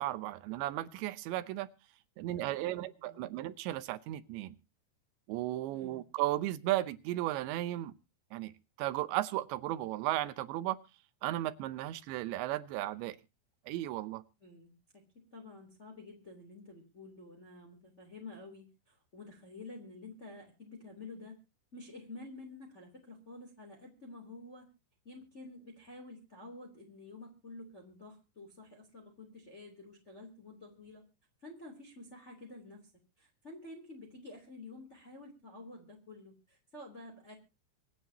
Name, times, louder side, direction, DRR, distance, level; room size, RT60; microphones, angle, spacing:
voice 1, 0.0-1.7 2.2-4.5 5.3-7.9 8.3-8.5 8.8-10.8 11.2-13.2 13.7-14.2, right 15 dB, 80° right, 14 dB, 3.1 m, -35 dB
voice 2, 2.2-3.3 5.7-6.1 14.4-21.4 21.7-24.7 25.0-31.0 31.4-32.9 33.2-37.4, left 2 dB, 15° left, 1 dB, 2.9 m, -50 dB
25.0 x 9.2 x 2.8 m, 0.29 s
omnidirectional pair, 5.4 m